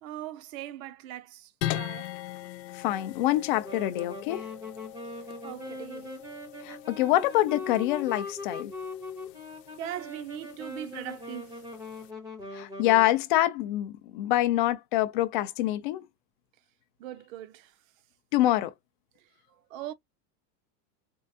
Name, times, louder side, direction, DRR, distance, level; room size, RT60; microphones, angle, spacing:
voice 1, 0.0-2.1 4.5-4.6 5.0-6.4 9.8-11.6 17.0-17.7 19.2-19.3 19.7-19.9, right 12 dB, 55° right, 0.7 m, -41 dB
sound 1, 1.6-12.1, left 14 dB, 80° left, 0.8 m, -41 dB
voice 2, 2.7-4.5 6.6-8.7 12.5-16.0 18.3-18.7, left 15 dB, 35° left, 0.4 m, -26 dB
Wind instrument woodwind instrument, 3.6-13.1, left 2 dB, 5° right, 0.7 m, -41 dB
4.5 x 2.0 x 2.5 m
supercardioid pair, 170°, 49 cm